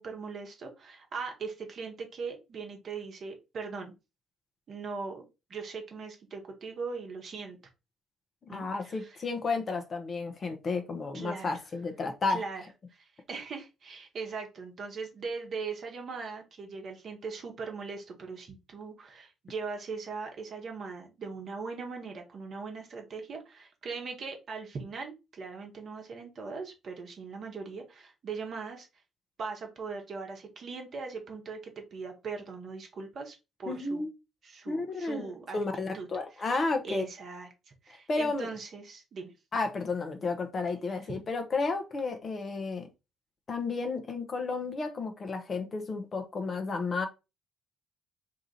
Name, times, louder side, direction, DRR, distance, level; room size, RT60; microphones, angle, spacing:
voice 1, 0.0-3.9 4.7-7.6 8.5-9.2 11.1-11.5 12.3-12.6 12.9-28.9 29.4-34.1 34.4-36.1 36.4-36.5 36.8-37.5 37.8-39.3 40.7-40.9, right 4 dB, 50° right, 1.0 m, -40 dB
voice 2, 8.4-12.4 33.7-34.1 34.7-35.2 35.5-37.1 38.1-38.5 39.5-42.9 43.5-47.1, left 3 dB, 40° left, 0.7 m, -32 dB
2.8 x 2.4 x 4.1 m
figure-of-eight pair, 45°, 0 cm